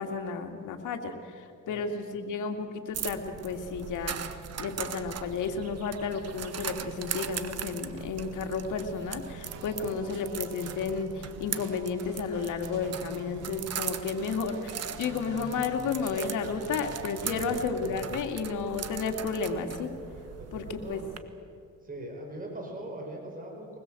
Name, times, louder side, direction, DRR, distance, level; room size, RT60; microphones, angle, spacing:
voice 1, 0.0-4.3 4.6-19.9 20.5-21.0, left 5 dB, 80° left, 5 dB, 2.5 m, -32 dB
sound 1, 2.9-21.2, right 8 dB, 55° right, 1.5 m, -40 dB
sound 2, 9.5-18.2, right 4 dB, 85° right, 2.7 m, -46 dB
voice 2, 17.3-17.7 20.4-21.1 21.8-23.8, right 1 dB, 25° right, 1 dB, 5.3 m, -41 dB
23.0 x 20.5 x 7.8 m, 2.4 s
cardioid pair, 90°, 30 cm